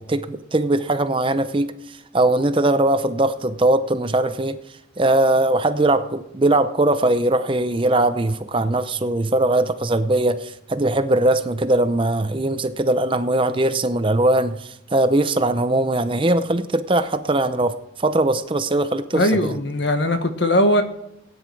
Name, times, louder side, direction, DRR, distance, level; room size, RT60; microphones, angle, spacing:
voice 1, 0.0-1.7 2.1-4.6 5.0-19.6, right 2 dB, 25° right, 10 dB, 0.7 m, -20 dB
voice 2, 19.1-20.8, left 1 dB, 65° left, 7 dB, 1.5 m, -19 dB
17.0 x 9.8 x 4.7 m, 0.79 s
head